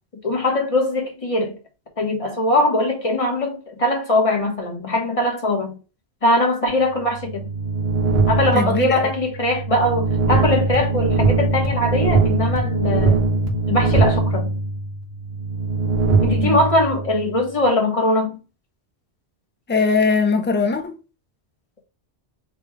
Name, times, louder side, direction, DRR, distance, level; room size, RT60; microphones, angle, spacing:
voice 1, 0.2-1.6 2.0-5.8 6.2-7.4 8.3-13.2 13.7-14.5 16.2-18.4, left 1 dB, 30° left, 1.1 m, -21 dB
sound 1, 6.8-17.5, right 3 dB, 65° right, 1.3 m, -21 dB
voice 2, 8.5-9.1 16.4-16.6 19.7-21.0, left 4 dB, 15° left, 0.4 m, -20 dB
3.7 x 2.4 x 4.6 m
omnidirectional pair, 1.1 m